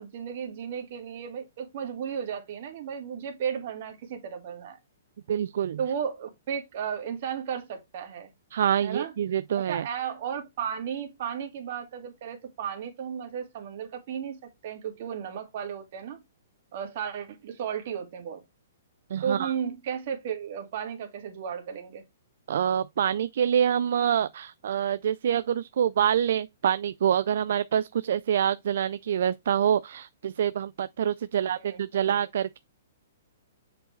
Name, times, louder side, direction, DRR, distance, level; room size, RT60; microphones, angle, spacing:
voice 1, 0.0-4.8 5.8-8.3 8.8-9.1 9.7-16.2 16.7-18.4 19.2-22.0 31.3-32.1, right 8 dB, 45° right, 2.0 m, -34 dB
voice 2, 5.3-5.8 8.5-9.9 19.1-19.5 22.5-32.6, right 9 dB, 60° right, 0.4 m, -26 dB
7.5 x 4.6 x 3.2 m
hypercardioid pair, 165°, 0 cm